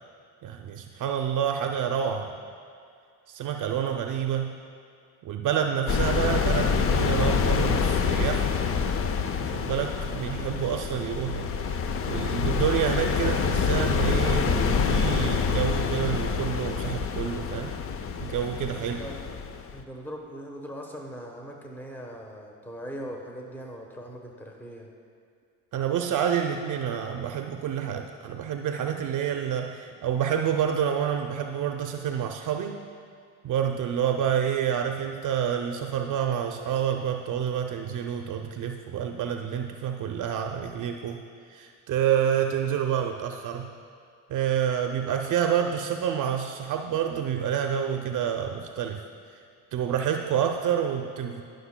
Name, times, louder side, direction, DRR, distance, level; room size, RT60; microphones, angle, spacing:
voice 1, 0.4-2.4 3.3-4.6 5.2-8.5 9.4-11.5 12.1-17.8 18.2-19.0 25.7-32.8 33.4-41.2 41.5-43.7 44.3-49.0 49.7-51.4, right 8 dB, 55° right, 4 dB, 0.6 m, -28 dB
sound 1, 5.9-19.8, left 6 dB, 35° left, 0.5 m, -26 dB
voice 2, 18.8-19.2 19.7-24.9, equal, 5° left, 1 dB, 1.0 m, -40 dB
18.0 x 6.4 x 2.2 m, 2.2 s
supercardioid pair, 85°, 38 cm